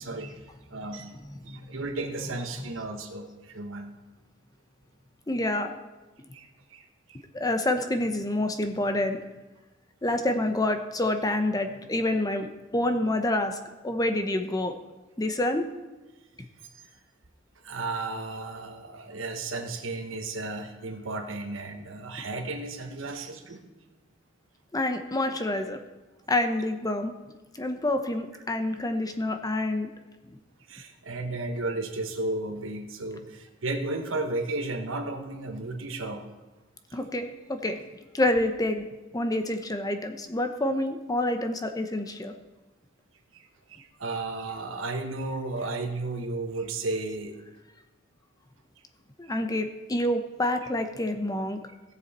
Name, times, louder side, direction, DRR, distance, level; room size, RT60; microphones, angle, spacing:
voice 1, 0.0-3.9 6.3-6.8 7.1-7.2 16.6-16.9 17.6-23.6 30.7-36.2 43.3-47.4 49.3-49.4, right 2 dB, 80° right, 5 dB, 1.2 m, -34 dB
voice 2, 0.9-1.9 2.2-2.7 5.3-5.8 7.3-9.2 10.0-12.5 12.7-13.6 13.8-14.7 15.2-15.7 24.7-25.8 26.3-27.1 27.5-29.9 30.3-30.4 36.9-37.8 38.1-38.8 39.1-42.3 49.2-51.6, left 1 dB, 20° left, 7 dB, 0.8 m, -28 dB
16.5 x 7.0 x 4.2 m, 1.1 s
head